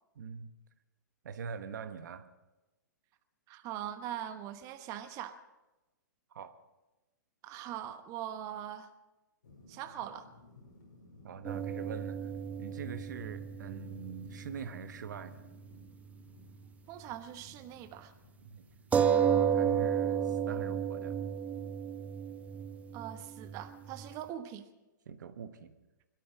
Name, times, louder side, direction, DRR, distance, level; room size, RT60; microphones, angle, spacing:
voice 1, 0.2-0.5 1.2-2.3 6.3-6.5 11.2-12.3 12.6-15.4 18.4-18.7 19.1-21.2 25.1-25.7, right 6 dB, 70° right, 9 dB, 1.2 m, -44 dB
voice 2, 3.5-5.4 7.4-8.9 9.7-10.3 16.9-18.1 22.9-24.6, right 11 dB, 35° right, 8 dB, 1.1 m, -41 dB
sound 1, 9.4-23.3, left 2 dB, 75° left, 4.8 m, -58 dB
sound 2, 11.4-15.3 15.6-15.7 18.9-24.1, right 8 dB, 15° right, 0.7 m, -32 dB
21.5 x 13.0 x 5.1 m, 1.1 s
hypercardioid pair, 125°, 10 cm